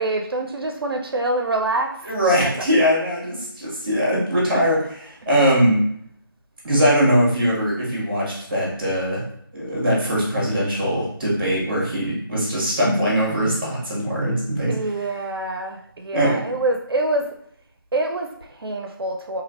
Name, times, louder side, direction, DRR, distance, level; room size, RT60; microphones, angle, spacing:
voice 1, 0.0-2.0 4.5-4.7 5.3-5.4 14.7-17.4 17.9-19.4, right 2 dB, 85° right, 3 dB, 0.4 m, -25 dB
voice 2, 2.0-4.8 5.3-5.8 6.6-9.2 9.5-14.7 16.1-16.4, equal, 25° right, -5 dB, 1.2 m, -21 dB
3.2 x 2.8 x 2.5 m, 0.68 s
figure-of-eight pair, 175°, 12 cm